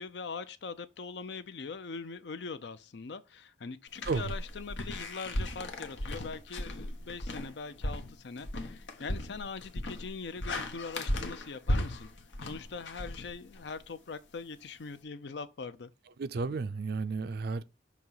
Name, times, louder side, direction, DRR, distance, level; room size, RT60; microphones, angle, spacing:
voice 1, 0.0-12.1 12.4-15.9, left 4 dB, 70° left, 0.5 m, -42 dB
sound 1, 4.0-13.8, left 1 dB, 85° left, 1.0 m, -36 dB
voice 2, 16.2-17.6, right 4 dB, 55° right, 0.4 m, -32 dB
6.1 x 2.9 x 5.5 m
head